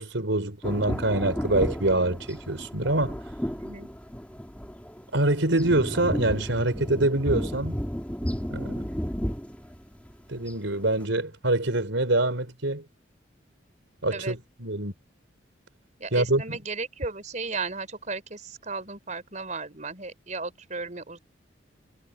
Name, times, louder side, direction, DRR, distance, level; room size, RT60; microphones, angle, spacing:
voice 1, 0.0-3.2 5.1-7.8 8.5-8.9 10.3-12.8 14.0-14.9 16.1-16.6, right 2 dB, 85° right, 4.5 m, -25 dB
sound 1, 0.6-10.6 11.0-11.1, equal, 5° left, 3.1 m, -33 dB
voice 2, 3.5-3.9 14.1-14.4 16.0-21.2, right 3 dB, 40° right, 4.7 m, -35 dB
head